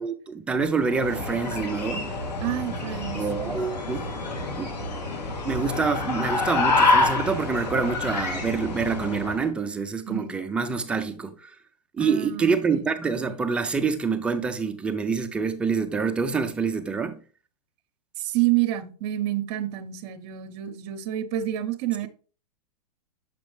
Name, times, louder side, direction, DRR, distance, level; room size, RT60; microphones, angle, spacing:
voice 1, 0.0-2.1 3.1-4.1 4.6-4.7 5.4-11.5 11.9-17.2, right 5 dB, 5° right, 0.3 m, -26 dB
sound 1, 0.8-9.5, left 3 dB, 90° left, 2.9 m, -27 dB
voice 2, 2.4-3.6 10.1-10.4 12.0-12.9 18.2-22.1, right 14 dB, 40° right, 0.8 m, -28 dB
7.1 x 5.1 x 3.1 m
hypercardioid pair, 150°, 21 cm